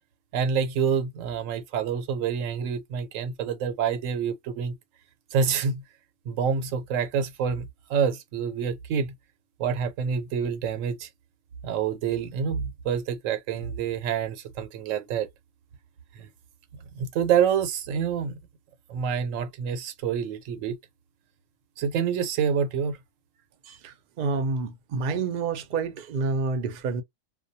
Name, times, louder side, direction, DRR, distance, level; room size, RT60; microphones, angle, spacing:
voice 1, 0.3-4.7 5.3-5.8 6.3-9.1 9.6-11.1 11.6-15.3 16.2-16.3 16.9-18.4 18.9-20.8 21.8-23.0, right 7 dB, 90° right, 1.0 m, -27 dB
voice 2, 23.6-27.0, right 4 dB, 55° right, 0.6 m, -29 dB
2.2 x 2.2 x 2.6 m
omnidirectional pair, 1.3 m